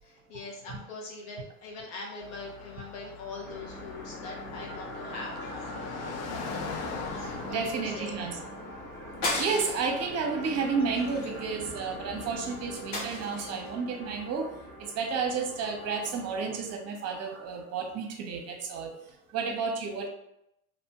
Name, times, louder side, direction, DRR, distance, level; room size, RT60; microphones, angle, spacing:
voice 1, 0.0-5.8 7.1-8.2, left 3 dB, 85° left, -1 dB, 0.8 m, -42 dB
Car passing by, 2.2-13.3, left 5 dB, 40° left, 0.4 m, -42 dB
sound 1, 3.5-16.8, equal, 25° left, 0.9 m, -43 dB
voice 2, 7.2-8.4 9.0-14.5 14.9-18.9 19.3-20.1, right 5 dB, 40° right, 3 dB, 0.7 m, -32 dB
sound 2, 9.2-10.0 10.4-10.6 10.9-11.9 12.9-13.7, left 2 dB, 60° left, 1.1 m, -34 dB
2.9 x 2.1 x 2.8 m, 0.83 s
supercardioid pair, 90°, 39 cm